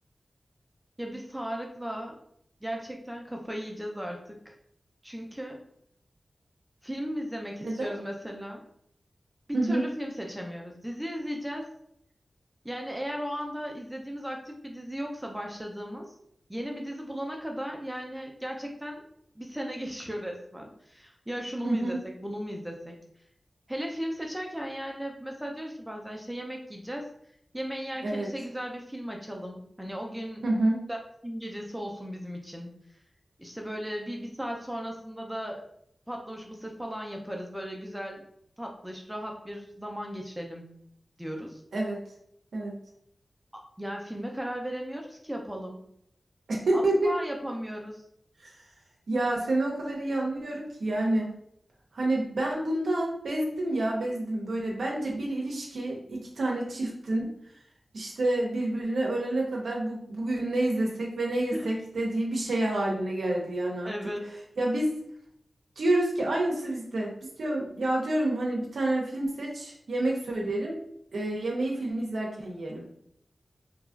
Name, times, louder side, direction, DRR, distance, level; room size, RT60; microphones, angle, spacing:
voice 1, 1.0-2.2 2.6-4.6 5.0-5.6 6.8-8.6 9.5-11.7 12.6-16.1 16.5-19.0 19.4-23.0 23.7-27.1 27.5-30.4 30.9-31.0 31.2-33.0 33.4-35.6 36.1-38.2 38.6-40.7 41.2-41.6 43.5-45.9 46.7-48.0 61.5-61.7 63.8-64.3, equal, 10° right, 1 dB, 0.5 m, -36 dB
voice 2, 21.6-22.0 28.0-28.3 30.4-30.8 41.7-42.0 42.5-42.8 46.5-47.1 48.4-48.6 49.1-51.3 51.9-57.3 57.9-63.9 64.6-64.9 65.8-70.8 71.1-72.9, right 1 dB, 90° right, -3 dB, 0.5 m, -28 dB
2.9 x 2.3 x 2.4 m, 0.70 s
cardioid pair, 40°, 0 cm